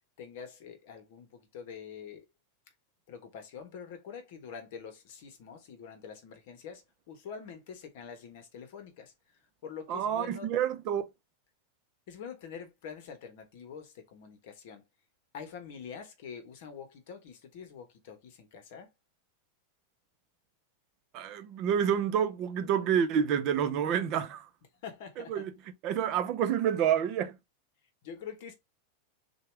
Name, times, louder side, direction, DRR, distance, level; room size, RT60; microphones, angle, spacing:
voice 1, 0.2-2.3 3.1-9.1 9.6-10.5 12.1-14.8 15.3-18.9 24.8-25.5 28.0-28.5, left 6 dB, 50° left, 1.2 m, -45 dB
voice 2, 9.9-11.0 21.1-24.5 25.3-25.5 25.8-27.4, right 8 dB, 35° right, 0.7 m, -28 dB
6.6 x 2.4 x 3.3 m
supercardioid pair, 175°, 0 cm